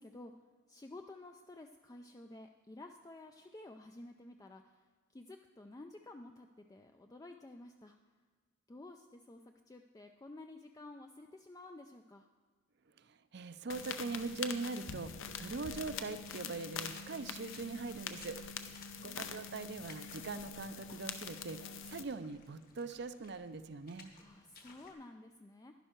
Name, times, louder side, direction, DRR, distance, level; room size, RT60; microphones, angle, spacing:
voice 1, 0.0-8.0 8.7-12.3 18.6-19.4 24.1-25.7, left 2 dB, 15° left, 5 dB, 0.3 m, -53 dB
voice 2, 13.0-18.4 19.0-21.6 21.9-24.1, right 3 dB, 55° right, 13 dB, 0.5 m, -42 dB
sound 1, 13.7-22.0, left 6 dB, 65° left, 0.7 m, -44 dB
Water / Splash splatter, 15.6-24.9, left 4 dB, 45° left, 1.3 m, -60 dB
11.0 x 11.0 x 4.5 m, 1.5 s
head